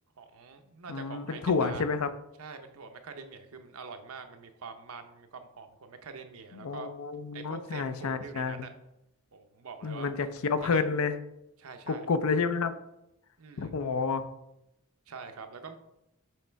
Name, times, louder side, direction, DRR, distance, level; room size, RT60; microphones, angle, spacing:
voice 1, 0.2-1.8 2.4-6.9 7.3-8.7 9.3-10.3 10.6-10.8 11.6-12.1 13.4-13.7 15.1-15.8, right 5 dB, 80° right, 7 dB, 0.7 m, -45 dB
voice 2, 0.9-2.1 6.6-8.6 9.8-11.2 11.9-12.8 13.6-14.3, left 4 dB, 80° left, 11 dB, 0.5 m, -29 dB
6.5 x 3.2 x 4.5 m, 0.87 s
head